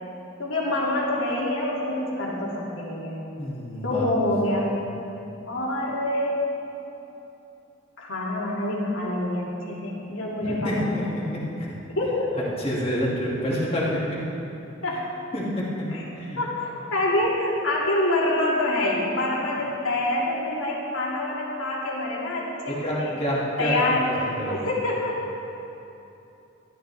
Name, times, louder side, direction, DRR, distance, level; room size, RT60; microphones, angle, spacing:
voice 1, 0.4-3.2 3.8-4.7 5.5-6.4 6.8-7.0 8.0-11.0 12.0-12.4 14.8-15.1 15.9-16.0 16.4-23.1 23.6-24.1 24.4-25.2, left 1 dB, 90° left, -4 dB, 2.3 m, -26 dB
voice 2, 3.4-4.1 4.7-4.8 10.4-11.7 12.6-14.2 15.3-15.9 16.2-16.4 22.7-24.7, equal, 30° left, -6 dB, 2.2 m, -28 dB
13.0 x 13.0 x 3.4 m, 2.9 s
head